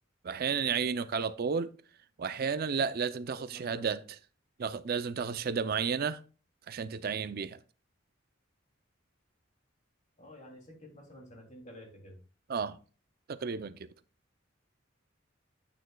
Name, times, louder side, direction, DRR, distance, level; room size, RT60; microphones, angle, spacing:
voice 1, 0.2-1.7 2.2-4.0 4.6-6.2 6.7-7.6 12.5-12.8 13.3-13.7, right 6 dB, 50° right, 0.4 m, -32 dB
voice 2, 3.4-4.0 10.2-12.2, equal, 40° left, 2.8 m, -51 dB
9.4 x 8.8 x 2.3 m
head